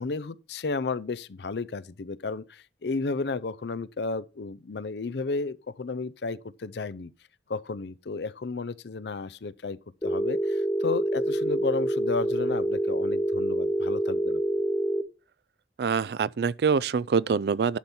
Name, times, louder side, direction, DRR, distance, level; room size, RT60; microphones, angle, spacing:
voice 1, 0.0-7.1 7.5-9.8 10.0-14.4, left 4 dB, 75° left, 0.6 m, -33 dB
Telephone, 10.0-15.0, equal, 20° left, 0.6 m, -27 dB
voice 2, 15.8-17.8, right 5 dB, 65° right, 0.4 m, -25 dB
11.5 x 4.3 x 7.0 m
head